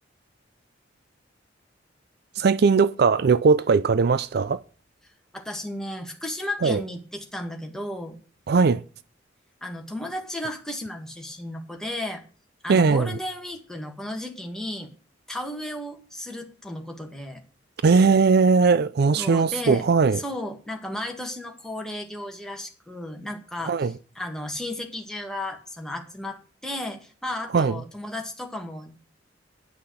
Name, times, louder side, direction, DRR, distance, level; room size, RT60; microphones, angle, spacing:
voice 1, 2.4-4.6 6.6-6.8 8.5-8.8 12.7-13.2 17.8-20.2 23.7-23.9 27.5-27.7, right 5 dB, 60° right, 0.4 m, -19 dB
voice 2, 5.3-8.2 9.6-12.2 12.6-14.9 15.3-17.4 19.2-19.9 20.1-28.9, left 1 dB, 5° left, 1.9 m, -34 dB
10.5 x 5.8 x 7.9 m
head